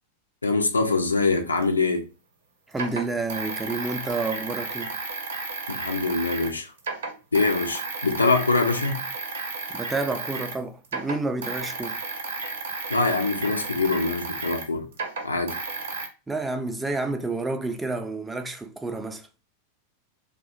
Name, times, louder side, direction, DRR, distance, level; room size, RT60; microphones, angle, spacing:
voice 1, 0.4-2.1 5.7-6.7 7.3-9.0 12.9-14.9 15.2-15.6, left 3 dB, 80° left, 0.3 m, -24 dB
sound 1, 1.6-1.7 2.7-6.5 6.8-10.6 10.8-16.1, right 4 dB, 65° right, 0.5 m, -33 dB
voice 2, 2.7-5.0 9.7-12.0 16.3-19.3, right 3 dB, 10° right, 0.3 m, -29 dB
2.6 x 2.1 x 2.5 m
figure-of-eight pair, 90°, 0 cm